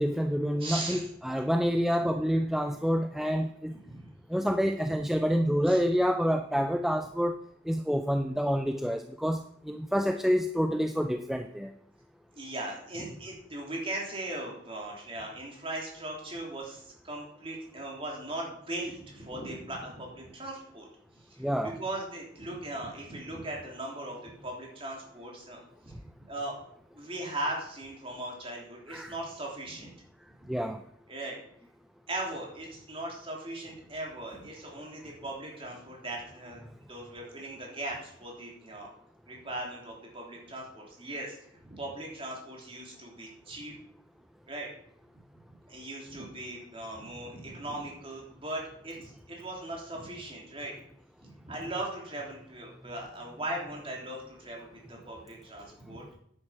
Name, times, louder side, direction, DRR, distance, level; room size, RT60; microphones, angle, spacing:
voice 1, 0.0-3.7 4.3-7.4 7.7-11.7 21.4-21.8 28.9-29.1 30.5-30.8, equal, ahead, 6 dB, 0.4 m, -28 dB
voice 2, 0.6-1.1 3.8-4.0 5.7-5.8 12.3-20.9 21.1-26.0 26.3-26.7 26.9-29.9 31.1-31.4 32.1-36.6 36.9-38.9 39.3-43.7 44.5-44.7 45.7-50.7 51.2-56.0, right 1 dB, 25° right, -2 dB, 3.2 m, -39 dB
9.8 x 9.0 x 5.8 m, 0.68 s
head